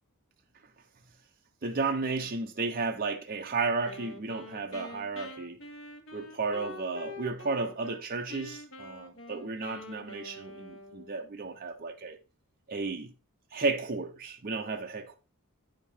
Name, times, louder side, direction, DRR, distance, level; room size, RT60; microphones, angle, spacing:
voice 1, 1.6-5.6 6.1-12.2 12.7-13.1 13.5-15.1, right 4 dB, 40° right, 0.6 m, -33 dB
Wind instrument woodwind instrument, 3.8-8.0 8.3-11.2, left 2 dB, 60° left, 1.8 m, -46 dB
9.7 x 5.2 x 4.3 m
head